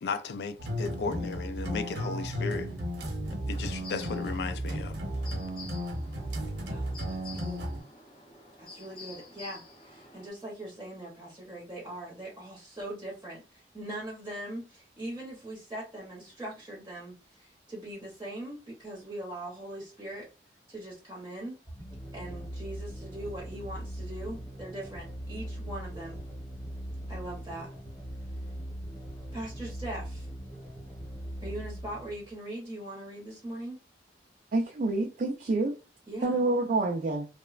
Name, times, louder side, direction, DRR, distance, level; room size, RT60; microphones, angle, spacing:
voice 1, 0.0-2.7 3.4-5.0, left 4 dB, 70° left, 0.3 m, -35 dB
sound 1, 0.6-7.8, equal, 80° right, 0.8 m, -34 dB
sound 2, 3.8-10.3, left 3 dB, 30° left, 0.6 m, -49 dB
voice 2, 6.6-7.6 8.6-20.3 20.7-21.6 22.1-26.2 27.1-27.7 29.3-30.3 31.4-33.8 36.1-36.4, right 1 dB, 15° right, 0.7 m, -41 dB
sound 3, 21.7-32.4, right 1 dB, 10° left, 0.9 m, -40 dB
voice 3, 34.5-35.7 36.2-37.3, right 2 dB, 45° right, 0.3 m, -27 dB
3.0 x 2.0 x 2.3 m
head